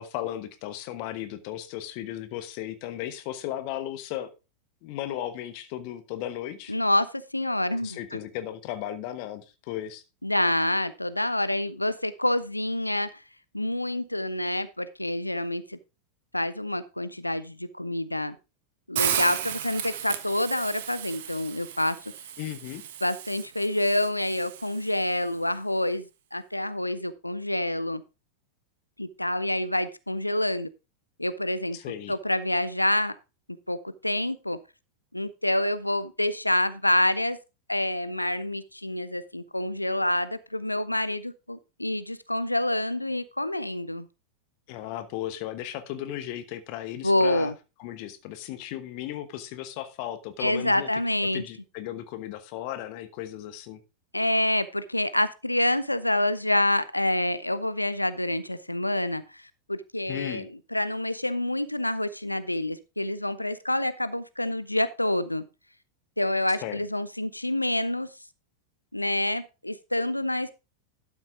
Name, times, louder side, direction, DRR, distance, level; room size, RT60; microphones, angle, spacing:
voice 1, 0.0-4.3 4.8-6.7 7.8-10.0 22.4-22.8 31.7-32.1 44.7-47.5 47.8-50.9 51.3-53.8 60.1-60.5 66.6-66.8, left 12 dB, 45° left, 1.0 m, -35 dB
voice 2, 6.7-8.2 10.2-13.2 13.5-15.8 16.3-18.4 18.9-22.0 23.0-28.0 29.0-30.7 31.2-31.8 32.1-33.2 33.7-34.6 35.1-37.4 37.7-44.1 47.0-47.5 50.4-51.4 54.1-65.4 66.2-68.1 68.9-70.5, left 1 dB, 85° left, 0.5 m, -27 dB
Hiss, 19.0-25.0, right 10 dB, 55° right, 1.1 m, -34 dB
12.0 x 6.1 x 3.7 m
figure-of-eight pair, 90°, 0 cm